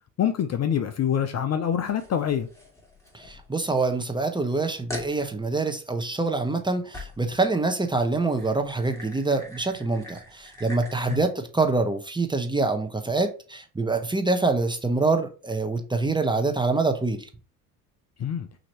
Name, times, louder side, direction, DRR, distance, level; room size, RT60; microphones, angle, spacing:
voice 1, 0.2-2.5 11.1-11.2 18.2-18.5, left 9 dB, 35° left, 0.6 m, -25 dB
sound 1, 1.9-3.9 4.3-4.4 4.9-5.2 6.9-7.3 8.1-11.3, left 1 dB, 5° left, 2.5 m, -43 dB
voice 2, 3.1-17.3, right 3 dB, 10° right, 0.9 m, -25 dB
5.9 x 2.9 x 3.0 m
hypercardioid pair, 65°, 47 cm